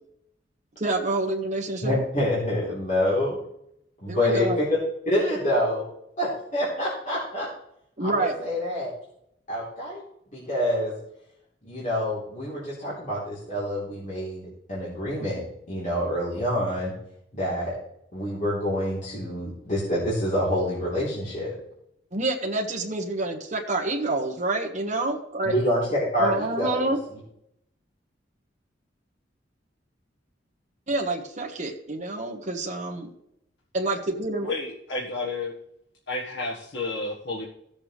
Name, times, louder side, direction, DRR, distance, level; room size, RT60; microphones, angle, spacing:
voice 1, 0.8-2.0 4.1-4.6 8.0-8.3 22.1-25.5 26.2-27.0 30.9-33.1 33.7-34.5, right 2 dB, 40° right, 1 dB, 1.4 m, -27 dB
voice 2, 1.8-3.4 4.0-4.5 5.0-5.8 6.2-7.5 8.0-8.9 9.5-10.0 10.3-10.9 11.6-16.9 17.3-17.8 18.1-21.5 25.4-27.2, left 1 dB, 40° left, -8 dB, 3.6 m, -27 dB
voice 3, 34.4-35.5 36.1-37.5, left 3 dB, 75° left, -3 dB, 1.5 m, -31 dB
17.0 x 7.2 x 3.3 m, 0.77 s
head